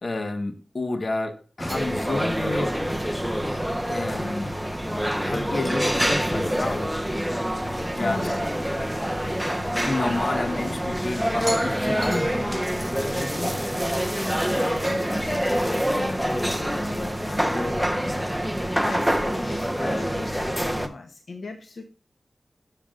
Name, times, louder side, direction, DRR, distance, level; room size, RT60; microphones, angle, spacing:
voice 1, 0.0-2.8 3.7-4.6 5.2-7.0 7.8-8.4 9.3-13.6, left 2 dB, 60° left, 1.4 m, -31 dB
sound 1, 1.6-20.9, equal, ahead, 1.1 m, -26 dB
voice 2, 8.0-8.4 14.4-21.8, left 3 dB, 85° left, 1.0 m, -37 dB
12.5 x 7.2 x 2.6 m
cardioid pair, 55°, 0 cm